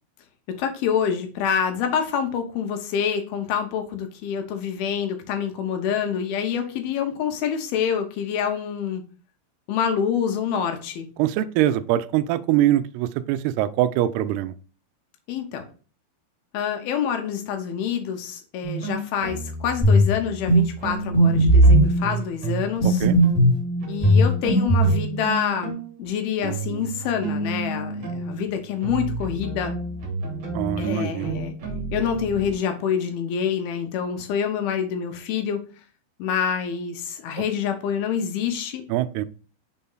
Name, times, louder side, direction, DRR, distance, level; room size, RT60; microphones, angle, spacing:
voice 1, 0.5-9.0 9.7-11.1 15.3-15.7 16.5-23.1 23.9-29.7 30.8-31.5 31.9-35.6 36.2-38.8, left 7 dB, 75° left, 2.4 m, -26 dB
voice 2, 11.2-14.5 22.8-23.2 30.5-31.3 38.9-39.3, right 12 dB, 85° right, 2.3 m, -23 dB
sound 1, 18.6-22.7 23.0-32.5, right 3 dB, 50° right, 2.2 m, -31 dB
sound 2, 19.8-20.1 20.5-20.6 21.1-21.9 22.8-23.6 24.0-25.0, right 1 dB, 25° left, 0.9 m, -16 dB
6.2 x 4.2 x 3.8 m
omnidirectional pair, 5.2 m